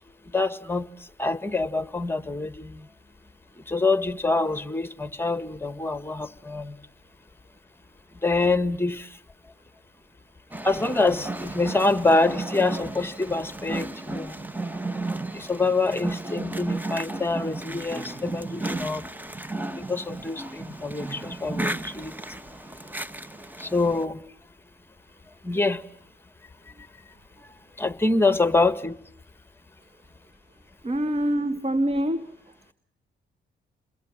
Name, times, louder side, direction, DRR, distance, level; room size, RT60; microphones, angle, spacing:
voice 1, 0.3-2.9 3.5-6.8 8.2-9.2 10.6-14.4 15.3-19.1 19.7-22.1 23.6-24.2 25.4-25.8 27.8-29.0, left 3 dB, 10° left, 1.8 m, -26 dB
sound 1, 10.5-24.0, right 2 dB, 10° right, 1.3 m, -34 dB
voice 2, 30.8-32.3, right 1 dB, 30° right, 2.2 m, -25 dB
29.5 x 21.5 x 9.0 m
cardioid pair, 90°, 20 cm